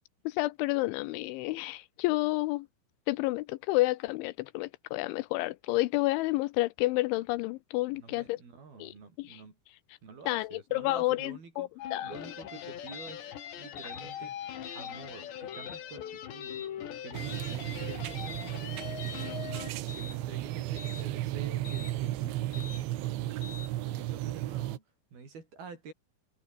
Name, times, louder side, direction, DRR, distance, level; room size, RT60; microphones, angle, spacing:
voice 1, 0.3-2.7 3.1-8.4 8.8-9.4 10.3-12.1, left 20 dB, 80° left, 2.9 m, -30 dB
voice 2, 7.9-9.6 10.0-13.3 13.6-14.4 14.8-16.7 17.0-19.6 19.9-23.4 23.8-24.8 25.1-25.9, right 5 dB, 50° right, 7.5 m, -48 dB
sound 1, 11.8-19.7, left 10 dB, 65° left, 4.5 m, -41 dB
sound 2, 12.9-13.2 13.8-14.0 14.6-14.9 15.5-15.8 16.4-16.7 17.3-17.6 18.2-18.5 19.0-19.3 19.9-20.2 20.8-21.1 21.6-21.9 22.5-22.8 23.4-23.7, left 6 dB, 40° left, 4.5 m, -45 dB
sound 3, 17.1-24.8, right 15 dB, 75° right, 3.6 m, -34 dB
omnidirectional pair, 5.6 m